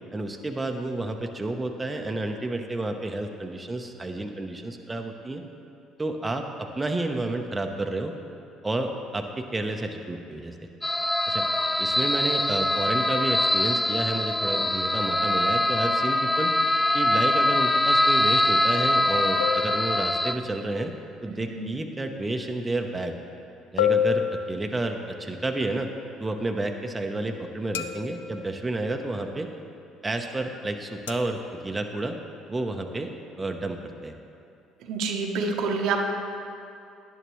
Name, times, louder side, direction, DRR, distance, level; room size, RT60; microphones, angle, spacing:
voice 1, 0.1-5.4 6.0-8.1 8.6-10.5 11.3-11.4 11.8-16.5 16.9-20.9 21.2-23.1 23.7-25.9 26.2-29.5 30.0-32.2 32.5-33.1 33.4-34.1, right 2 dB, 20° right, 3 dB, 0.8 m, -30 dB
sound 1, 10.8-20.3, left 1 dB, 10° left, 0.4 m, -23 dB
sound 2, 19.4-20.5 23.8-25.2 27.7-28.5 31.1-31.4, left 8 dB, 90° left, 0.3 m, -28 dB
voice 2, 34.8-36.0, right 4 dB, 70° right, 2 dB, 0.9 m, -27 dB
11.0 x 10.0 x 3.1 m, 2.6 s
hypercardioid pair, 60°, 0 cm